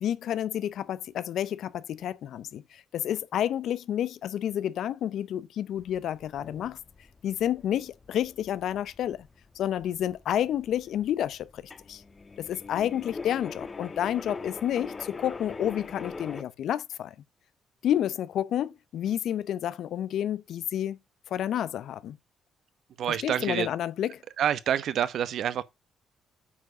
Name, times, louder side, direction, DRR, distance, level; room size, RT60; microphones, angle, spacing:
voice 1, 0.0-6.8 7.2-9.3 9.6-11.6 11.9-12.0 12.4-17.1 17.8-21.0 21.3-22.2 23.1-24.1, left 10 dB, 70° left, 0.6 m, -30 dB
sound 1, 5.7-16.4, left 4 dB, 35° left, 1.2 m, -43 dB
voice 2, 23.0-23.7 24.4-25.6, right 9 dB, 70° right, 0.9 m, -27 dB
8.5 x 4.9 x 4.9 m
supercardioid pair, 60°, 0 cm